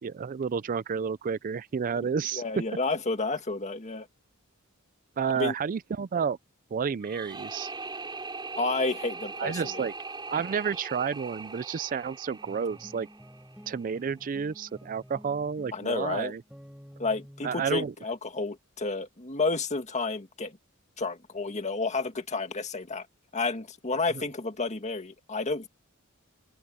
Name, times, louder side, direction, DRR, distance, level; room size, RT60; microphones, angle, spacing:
voice 1, 0.0-2.4 5.2-6.4 6.7-7.7 9.4-9.9 10.3-13.1 13.7-16.4 17.4-17.9 24.1-24.3, right 6 dB, 40° right, 0.4 m, -30 dB
voice 2, 2.3-4.1 5.4-5.5 8.6-9.6 15.7-16.3 17.0-20.6 21.0-23.1 23.3-25.7, left 3 dB, 35° left, 1.8 m, -30 dB
sound 1, 7.0-14.0, right 3 dB, 20° right, 5.0 m, -41 dB
sound 2, 12.4-17.8, equal, 5° right, 3.9 m, -51 dB
open air
head